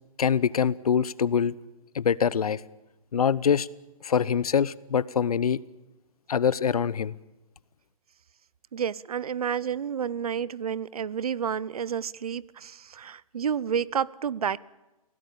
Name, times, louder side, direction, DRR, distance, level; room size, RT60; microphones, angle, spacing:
voice 1, 0.2-1.5 1.9-2.6 3.1-3.7 4.0-5.6 6.3-7.1, left 7 dB, 85° left, 0.9 m, -24 dB
voice 2, 8.7-14.6, right 8 dB, 80° right, 0.8 m, -30 dB
25.0 x 17.0 x 8.7 m
hypercardioid pair, 140°, 19 cm